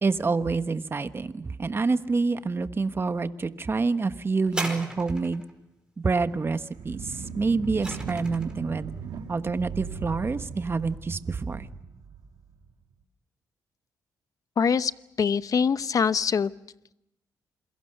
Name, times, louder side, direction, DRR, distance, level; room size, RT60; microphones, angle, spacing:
voice 1, 0.0-5.4 6.0-8.9 9.3-11.7, right 4 dB, 35° right, 10 dB, 1.3 m, -27 dB
sound 1, 4.5-5.5 7.2-8.6 9.4-9.5, right 1 dB, 10° right, 4.9 m, -36 dB
sound 2, 6.7-12.7, right 6 dB, 80° right, 2.5 m, -38 dB
voice 2, 14.6-14.9 15.2-16.5, left 6 dB, 50° left, 15 dB, 0.8 m, -23 dB
27.5 x 22.5 x 6.7 m, 0.87 s
cardioid pair, 80°, 7 cm